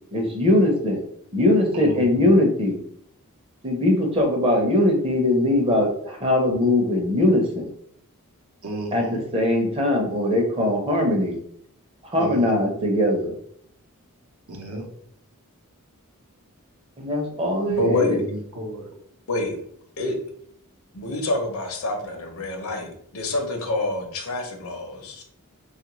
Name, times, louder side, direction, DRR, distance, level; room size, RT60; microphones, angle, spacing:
voice 1, 0.1-1.0 1.3-2.8 3.6-7.7 8.9-9.0 9.3-11.4 12.0-13.4 17.0-18.3, left 1 dB, 25° right, 1 dB, 0.7 m, -21 dB
voice 2, 1.7-2.3 8.6-9.3 12.1-12.7 14.5-14.9 17.8-18.9, right 1 dB, 70° right, 1 dB, 0.7 m, -33 dB
voice 3, 17.7-18.2 19.3-19.6 20.0-20.1 20.9-25.2, left 2 dB, 70° left, 3 dB, 0.7 m, -27 dB
3.0 x 2.4 x 3.0 m, 0.66 s
head